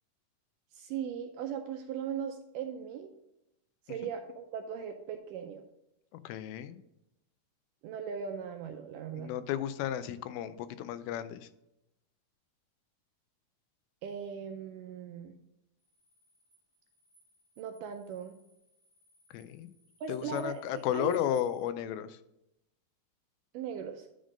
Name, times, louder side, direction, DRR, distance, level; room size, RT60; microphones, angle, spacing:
voice 1, 0.7-3.1 3.9-5.6 7.8-9.3 14.0-15.4 17.6-18.3 20.0-21.1 23.5-24.1, right 7 dB, 80° right, 5 dB, 1.9 m, -39 dB
voice 2, 6.2-6.8 9.1-11.5 19.3-19.7 20.1-22.2, left 10 dB, 90° left, 13 dB, 2.4 m, -33 dB
sound 1, 15.8-21.6, right 2 dB, 60° right, 0.5 m, -66 dB
10.0 x 3.8 x 5.0 m, 0.86 s
omnidirectional pair, 4.2 m